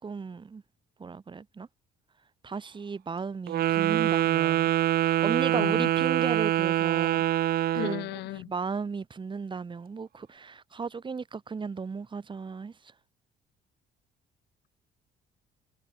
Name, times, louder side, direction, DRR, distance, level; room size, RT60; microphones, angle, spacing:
voice 1, 0.0-0.6 1.0-1.7 2.4-4.7 5.0-12.7, right 5 dB, 30° right, 6.2 m, -36 dB
Wind instrument woodwind instrument, 3.5-8.1, right 13 dB, 65° right, 2.1 m, -25 dB
voice 2, 5.5-5.9 7.7-8.5, left 17 dB, 80° left, 4.2 m, -35 dB
cardioid pair, 110°, 17 cm